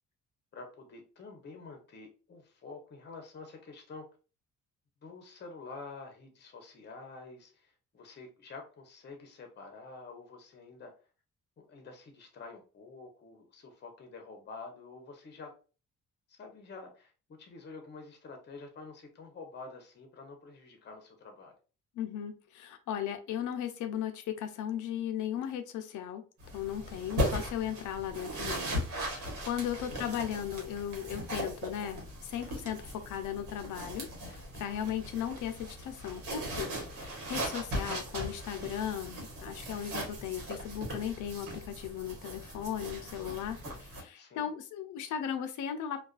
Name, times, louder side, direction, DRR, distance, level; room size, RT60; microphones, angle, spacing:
voice 1, 0.5-4.1 5.0-10.9 11.6-15.5 16.3-21.5 29.8-30.1 43.5-43.8 44.1-44.5, left 3 dB, 35° left, 4 dB, 0.7 m, -48 dB
voice 2, 22.0-26.2 26.5-43.6 44.0-46.0, left 9 dB, 80° left, 8 dB, 0.5 m, -37 dB
sound 1, 26.4-44.0, equal, 85° right, 1.1 m, -38 dB
2.3 x 2.3 x 2.3 m, 0.35 s
cardioid pair, 90°, 30 cm